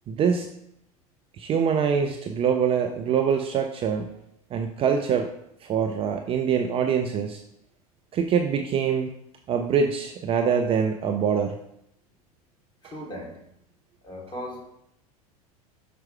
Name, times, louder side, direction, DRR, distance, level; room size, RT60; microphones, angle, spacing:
voice 1, 0.1-0.5 1.4-4.1 4.5-5.3 5.6-7.4 8.1-9.1 9.5-11.6, right 7 dB, 30° right, 4 dB, 0.6 m, -24 dB
voice 2, 12.8-13.5 14.0-14.8, equal, 25° left, -1 dB, 2.4 m, -38 dB
6.1 x 4.7 x 4.4 m, 0.77 s
figure-of-eight pair, 80°, 20 cm